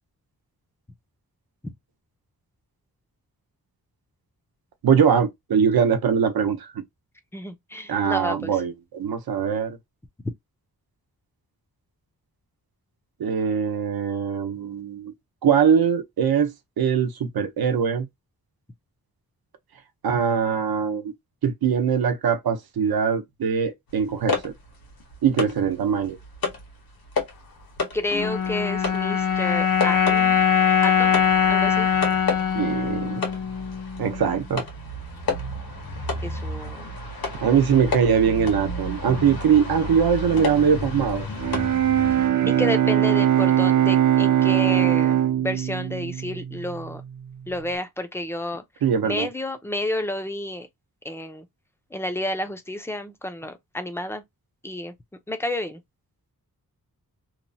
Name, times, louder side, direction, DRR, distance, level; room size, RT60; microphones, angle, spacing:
voice 1, 4.8-6.7 7.9-9.8 13.2-15.1 15.4-18.1 20.0-21.1 21.4-24.5 25.2-26.2 32.5-33.2 34.0-34.6 37.4-41.3 48.8-49.3, right 7 dB, 85° right, 0.7 m, -22 dB
voice 2, 7.3-8.6 27.9-30.4 30.8-31.9 36.2-37.0 42.6-47.0 47.5-48.6 49.0-50.7 51.0-51.5 51.9-54.2 54.6-54.9 55.3-55.8, left 1 dB, 5° left, 0.4 m, -30 dB
sound 1, 24.0-25.7 26.1-26.7 27.1-27.4 27.8-42.3, left 3 dB, 80° left, 1.2 m, -31 dB
sound 2, 28.1-34.5, left 7 dB, 60° left, 0.6 m, -22 dB
Bowed string instrument, 41.3-47.4, right 11 dB, 55° right, 0.5 m, -21 dB
3.0 x 2.0 x 2.6 m
wide cardioid pair, 175°, 36 cm